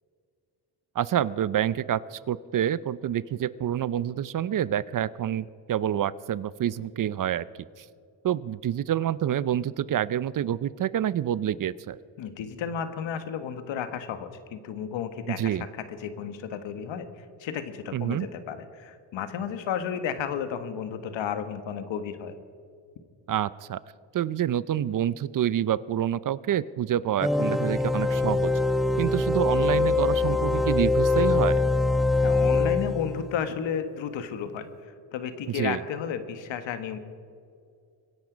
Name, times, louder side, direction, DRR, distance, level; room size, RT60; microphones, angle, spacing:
voice 1, 1.0-7.4 8.2-12.0 15.3-15.6 17.9-18.3 23.3-23.8 24.1-28.5 29.0-31.6 35.5-35.8, right 10 dB, 45° right, 19 dB, 0.6 m, -27 dB
voice 2, 12.2-22.3 32.2-37.0, left 8 dB, 85° left, 10 dB, 1.5 m, -33 dB
sound 1, 27.2-33.3, left 3 dB, ahead, 0.4 m, -23 dB
24.0 x 10.5 x 5.1 m, 2.3 s
cardioid pair, 95°, 44 cm